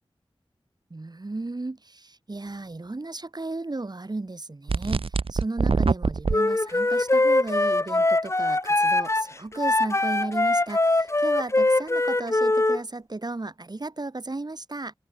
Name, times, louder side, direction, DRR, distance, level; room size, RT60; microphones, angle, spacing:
voice 1, 0.9-14.9, right 2 dB, 45° right, 1.7 m, -34 dB
sound 1, 4.7-6.4, right 4 dB, 70° right, 0.8 m, -23 dB
Wind instrument woodwind instrument, 6.3-12.8, left 2 dB, 30° left, 0.8 m, -22 dB
open air
cardioid pair, 45°, 10 cm